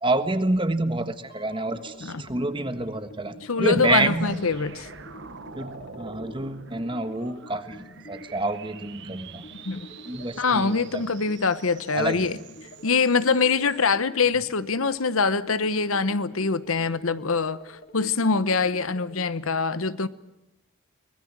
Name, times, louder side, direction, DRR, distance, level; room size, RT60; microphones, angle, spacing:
voice 1, 0.0-4.4 5.5-9.5 10.0-11.1 11.9-12.3, right 2 dB, 25° right, 1.4 m, -28 dB
sound 1, 1.3-19.3, left 1 dB, 45° left, 3.1 m, -47 dB
voice 2, 3.5-4.9 9.6-9.9 10.4-12.4 12.8-20.1, left 4 dB, 75° left, 1.0 m, -24 dB
sound 2, 3.8-13.9, right 5 dB, 55° right, 1.3 m, -45 dB
24.5 x 20.5 x 7.5 m
head